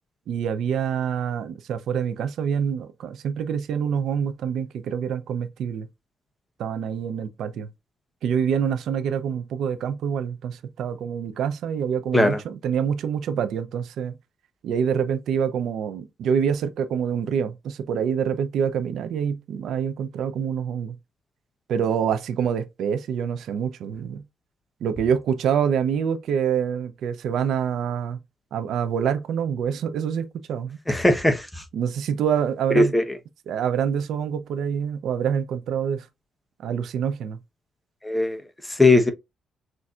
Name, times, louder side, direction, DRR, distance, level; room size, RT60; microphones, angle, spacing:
voice 1, 0.3-5.9 6.6-7.7 8.2-14.2 14.6-21.0 21.7-24.2 24.8-28.2 28.5-30.8 31.7-32.9 33.5-36.1 36.6-37.4, right 7 dB, 80° right, 0.6 m, -26 dB
voice 2, 30.9-31.6 32.7-33.0 38.0-38.4 38.7-39.1, left 2 dB, 10° left, 0.9 m, -19 dB
6.2 x 2.7 x 2.4 m
cardioid pair, 100°, 0 cm